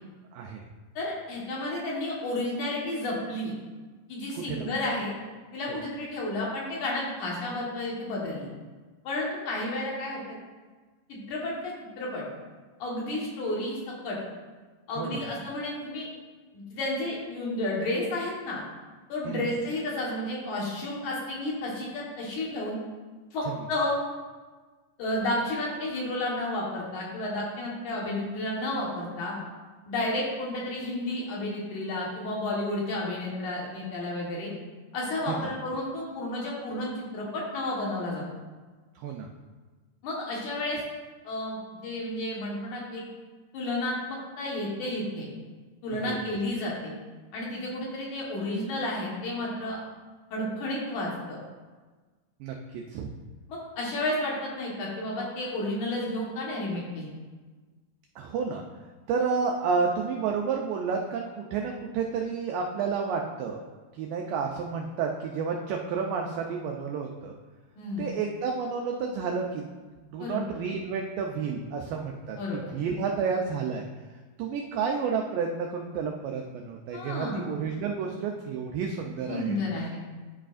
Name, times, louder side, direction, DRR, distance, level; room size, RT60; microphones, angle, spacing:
voice 1, 0.3-0.6 4.4-4.7 5.7-5.8 15.0-15.2 19.3-19.4 23.5-23.6 39.0-39.3 45.9-46.2 52.4-53.1 58.2-58.6 59.1-63.6 64.0-67.4 68.0-69.6 70.1-73.9 74.4-79.6, right 5 dB, 85° right, 1 dB, 1.9 m, -30 dB
voice 2, 1.0-3.5 4.1-5.1 5.5-8.5 9.0-10.4 11.1-12.3 12.8-13.8 14.0-14.2 14.9-16.1 16.5-18.6 19.1-22.8 23.3-24.0 25.0-29.4 29.9-34.5 34.9-38.2 40.0-40.8 41.2-41.6 41.8-43.0 43.5-45.3 45.8-46.9 47.3-49.8 50.3-51.1 53.5-57.2 67.8-68.1 70.2-70.4 72.4-72.7 76.9-77.5 79.3-80.0, left 1 dB, 60° left, -4 dB, 2.5 m, -31 dB
12.5 x 4.9 x 2.5 m, 1.3 s
omnidirectional pair, 4.6 m